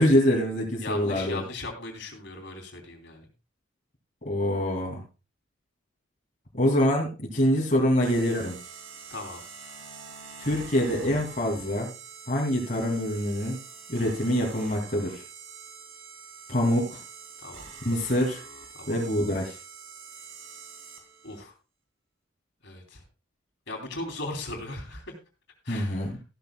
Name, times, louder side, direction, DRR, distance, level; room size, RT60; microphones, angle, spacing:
voice 1, 0.0-1.4 4.2-5.0 6.5-8.6 10.4-11.9 12.3-13.6 13.9-15.2 16.5-17.0 17.8-18.4 18.9-19.6 25.7-26.1, equal, 40° left, -2 dB, 2.4 m, -25 dB
voice 2, 0.8-3.2 9.1-9.4 17.4-17.7 18.7-19.0 21.2-21.5 22.6-23.0 23.7-25.1 25.6-26.1, left 2 dB, 60° left, 3 dB, 3.0 m, -38 dB
sound 1, 8.0-21.4, right 5 dB, 85° right, 3.0 m, -45 dB
14.5 x 12.0 x 2.2 m, 0.30 s
head